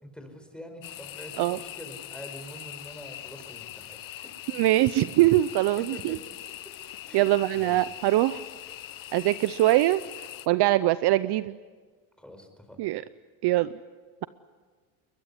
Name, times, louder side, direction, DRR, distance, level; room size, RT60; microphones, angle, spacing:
voice 1, 0.0-4.3 5.9-6.4 7.0-7.2 7.5-7.9 12.2-12.8, equal, ahead, 5 dB, 4.9 m, -45 dB
sound 1, 0.8-10.5, left 13 dB, 45° left, 0.8 m, -42 dB
voice 2, 4.5-6.2 7.1-8.4 9.1-10.0 10.5-11.5 12.8-13.0 13.4-13.7, right 16 dB, 55° right, 15 dB, 0.7 m, -22 dB
22.5 x 21.0 x 9.6 m, 1.5 s
cardioid pair, 115°, 49 cm